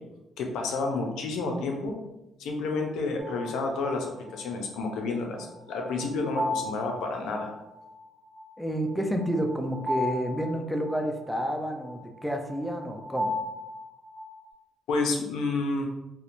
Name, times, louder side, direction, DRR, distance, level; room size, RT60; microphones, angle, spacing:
voice 1, 0.4-1.9 2.4-7.5 14.9-15.9, left 3 dB, 85° left, 2 dB, 0.4 m, -30 dB
sound 1, 3.2-14.5, left 1 dB, 70° right, 0.8 m, -36 dB
voice 2, 8.6-13.4, equal, ahead, 3 dB, 0.3 m, -30 dB
2.8 x 2.0 x 2.5 m, 0.93 s
cardioid pair, 90°, 0 cm